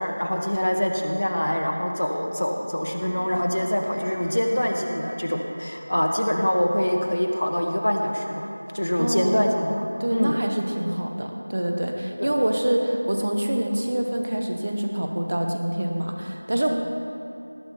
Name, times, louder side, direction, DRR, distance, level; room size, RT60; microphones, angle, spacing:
voice 1, 0.0-10.3 12.2-12.3, equal, 55° left, 2 dB, 1.5 m, -25 dB
sound 1, 3.0-7.3, right 1 dB, ahead, 0.5 m, -46 dB
voice 2, 9.0-9.4 10.0-16.7, right 1 dB, 30° right, 3 dB, 1.0 m, -26 dB
18.5 x 9.7 x 5.6 m, 2.7 s
figure-of-eight pair, 180°, 0 cm